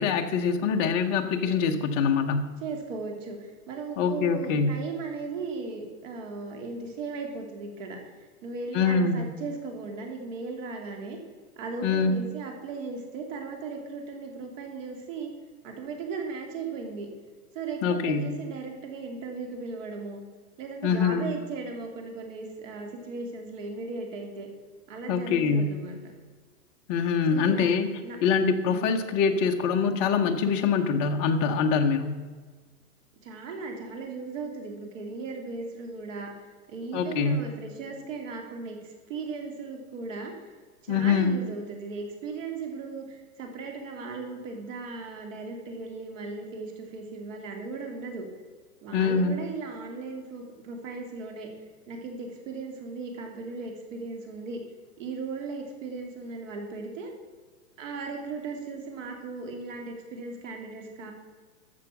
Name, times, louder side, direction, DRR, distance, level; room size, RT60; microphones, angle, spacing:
voice 1, 0.0-2.5 4.0-4.7 8.7-9.3 11.8-12.3 17.8-18.2 20.8-21.3 25.1-25.7 26.9-27.9 28.2-32.2 36.9-37.4 40.9-41.3 48.9-49.3, left 5 dB, 20° left, 4 dB, 0.7 m, -24 dB
voice 2, 2.6-8.0 8.4-11.2 11.6-15.3 15.6-17.1 17.5-20.2 20.6-24.5 24.9-26.0 27.3-27.7 28.0-28.2 28.6-28.9 33.2-36.3 36.7-40.3 40.8-48.2 48.8-51.5 51.9-54.6 55.0-57.1 57.8-61.1, right 4 dB, 55° right, 3 dB, 2.9 m, -37 dB
13.5 x 6.8 x 5.9 m, 1.5 s
hypercardioid pair, 155°, 46 cm